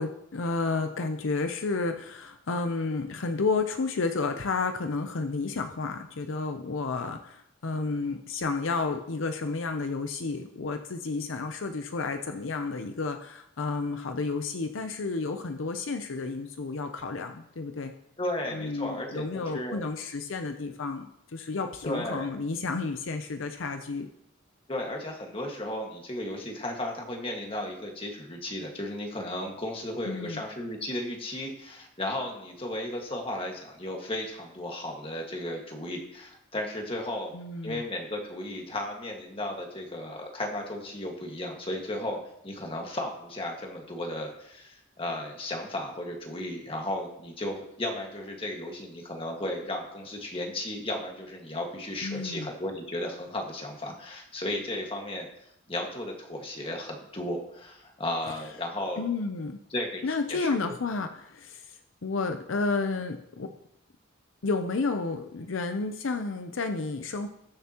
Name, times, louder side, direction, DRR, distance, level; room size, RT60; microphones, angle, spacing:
voice 1, 0.0-17.9 18.5-24.1 30.0-30.4 37.3-37.8 52.0-52.5 59.0-59.6 60.0-63.5 64.4-67.3, left 3 dB, 70° left, 7 dB, 0.6 m, -31 dB
voice 2, 18.2-19.8 21.8-22.3 24.7-37.3 37.6-55.3 55.7-59.1 59.7-60.0 60.3-60.7, left 1 dB, 25° left, 1 dB, 1.7 m, -34 dB
20.0 x 6.9 x 2.9 m, 0.78 s
head